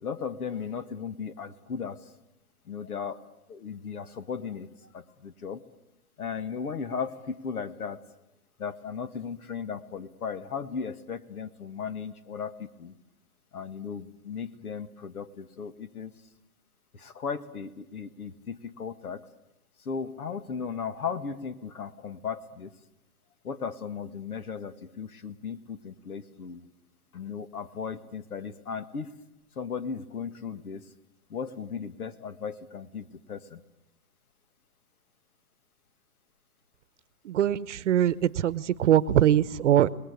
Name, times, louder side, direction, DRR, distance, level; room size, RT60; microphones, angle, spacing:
voice 1, 0.0-2.0 2.7-3.2 3.5-4.7 4.9-5.6 6.2-8.0 8.6-12.9 13.5-16.1 16.9-19.3 19.9-22.7 23.4-26.7 27.1-29.1 29.6-30.9 31.3-33.6, left 6 dB, 70° left, 11 dB, 2.0 m, -36 dB
voice 2, 37.2-39.9, right 11 dB, 50° right, 16 dB, 1.0 m, -22 dB
30.0 x 20.0 x 8.5 m, 0.95 s
hypercardioid pair, 145°, 45 cm